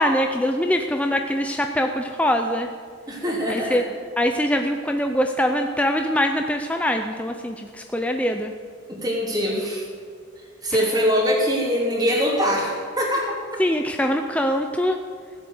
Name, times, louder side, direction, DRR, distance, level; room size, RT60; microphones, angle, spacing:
voice 1, 0.0-2.7 3.5-3.8 4.2-8.5 10.7-10.9 13.6-15.0, equal, 5° left, 4 dB, 0.5 m, -23 dB
voice 2, 3.1-3.8 8.9-9.8 10.6-13.4, equal, 20° right, -3 dB, 3.3 m, -23 dB
15.5 x 7.7 x 8.1 m, 2.1 s
head